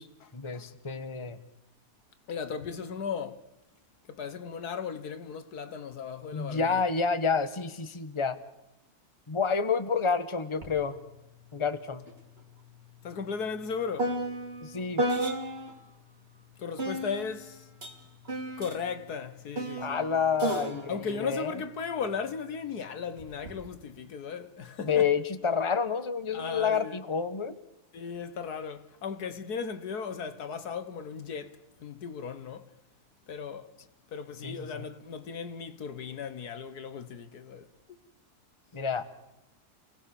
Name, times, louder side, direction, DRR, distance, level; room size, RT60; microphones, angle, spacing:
voice 1, 0.3-1.4 6.3-8.4 9.3-11.0 11.5-12.0 14.6-15.0 19.8-21.6 24.8-27.6 34.4-34.9 38.7-39.0, left 5 dB, 20° left, 1.3 m, -29 dB
voice 2, 2.3-3.4 4.1-6.8 13.0-14.2 16.6-17.6 18.6-20.0 20.9-25.1 26.3-27.0 27.9-32.7 33.3-33.7 34.1-37.6, left 6 dB, 75° left, 1.8 m, -36 dB
sound 1, 10.6-10.8 11.1-15.9 16.8-22.3 23.2-23.6, right 1 dB, 40° right, 3.2 m, -35 dB
28.5 x 18.5 x 7.1 m
omnidirectional pair, 1.7 m